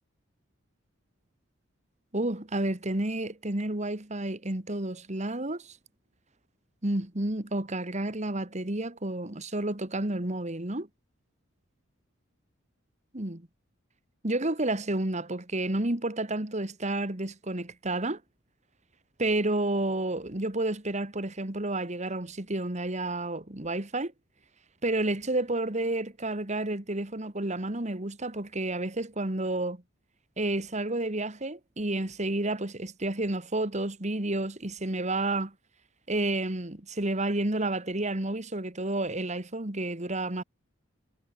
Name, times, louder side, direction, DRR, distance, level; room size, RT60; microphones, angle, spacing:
voice 1, 2.1-5.8 6.8-10.9 13.1-13.5 14.2-18.2 19.2-24.1 24.8-29.8 30.4-35.5 36.1-40.4, right 2 dB, 35° right, 2.0 m, -30 dB
head